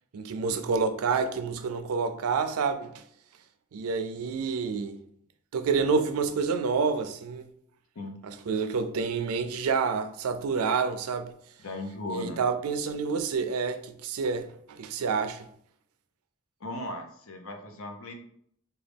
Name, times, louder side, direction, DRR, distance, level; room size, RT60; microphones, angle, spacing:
voice 1, 0.1-3.0 3.7-5.0 5.5-7.5 8.2-11.3 12.1-15.5, right 5 dB, 90° right, 0.4 m, -28 dB
voice 2, 11.6-12.4 16.6-18.1, left 2 dB, 75° left, 0.7 m, -37 dB
3.8 x 2.3 x 3.4 m
head